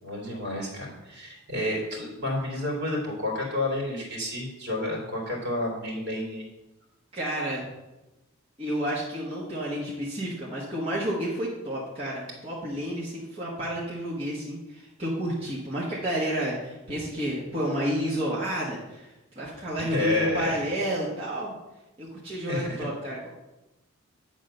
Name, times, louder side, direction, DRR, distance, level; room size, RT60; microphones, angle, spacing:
voice 1, 0.0-6.4 19.9-20.6 22.5-22.9, left 1 dB, 55° right, -1 dB, 2.6 m, -30 dB
voice 2, 7.1-7.6 8.6-19.1 19.3-21.5 22.0-23.3, right 1 dB, 25° right, -6 dB, 1.3 m, -30 dB
8.9 x 3.7 x 6.4 m, 1.0 s
head